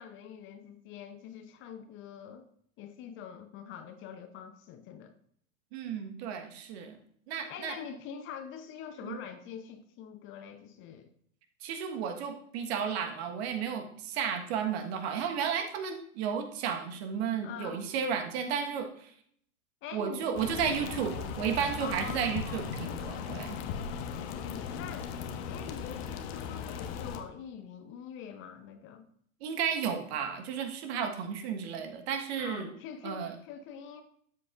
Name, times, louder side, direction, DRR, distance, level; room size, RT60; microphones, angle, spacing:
voice 1, 0.0-2.5 2.8-5.1 7.5-11.1 17.4-17.8 19.8-20.3 20.6-20.9 21.8-22.6 23.9-25.2 25.5-29.0 32.4-34.0, left 8 dB, 30° left, 8 dB, 0.7 m, -44 dB
voice 2, 5.7-7.0 7.3-7.7 9.0-9.2 11.6-19.1 19.9-23.6 29.4-32.7 33.0-33.3, right 7 dB, 45° right, 6 dB, 1.4 m, -33 dB
sound 1, 20.4-27.2, left 7 dB, 45° left, 1.1 m, -38 dB
13.0 x 7.7 x 2.5 m, 0.65 s
hypercardioid pair, 110°, 43 cm